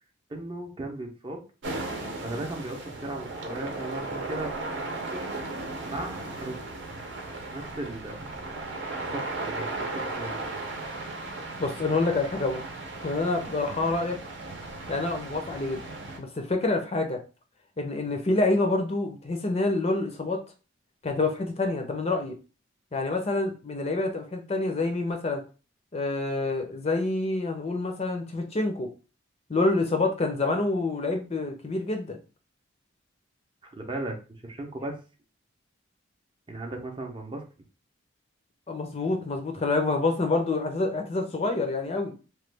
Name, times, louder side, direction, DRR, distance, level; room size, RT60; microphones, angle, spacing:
voice 1, 0.3-1.4 1.9-2.0 2.2-5.2 5.8-6.6 7.5-8.3 8.9-10.4 33.6-34.2 34.4-35.0 36.5-37.4, right 2 dB, 25° right, 2 dB, 0.5 m, -37 dB
sound 1, 1.6-16.2, right 2 dB, 65° right, 0.7 m, -36 dB
voice 2, 11.6-12.6 13.0-14.2 14.9-15.8 16.2-17.2 17.8-20.4 21.0-22.3 22.9-25.4 25.9-28.9 29.5-32.2 38.7-42.1, left 2 dB, 30° left, 4 dB, 0.5 m, -27 dB
3.0 x 2.2 x 3.3 m, 0.34 s
head